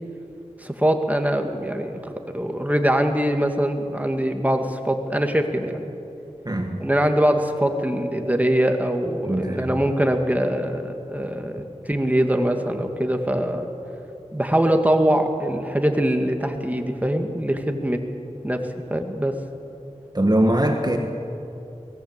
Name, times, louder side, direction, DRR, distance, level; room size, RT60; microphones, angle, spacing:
voice 1, 0.6-5.8 6.8-13.7 14.3-18.0 18.4-19.4, right 1 dB, 10° right, 5 dB, 2.1 m, -23 dB
voice 2, 6.5-6.8 9.3-9.8 20.1-21.0, right 1 dB, 35° right, 4 dB, 1.7 m, -21 dB
22.5 x 18.0 x 8.2 m, 2.8 s
wide cardioid pair, 45°, 13 cm